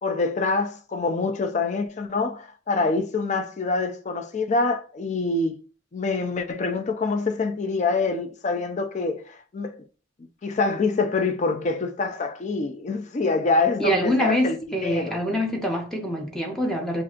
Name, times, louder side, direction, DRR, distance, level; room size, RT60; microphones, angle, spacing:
voice 1, 0.0-5.6 5.9-9.8 10.4-15.2, left 3 dB, 40° left, 0.4 m, -25 dB
voice 2, 13.8-17.0, equal, ahead, 0.7 m, -25 dB
5.7 x 2.5 x 2.4 m
head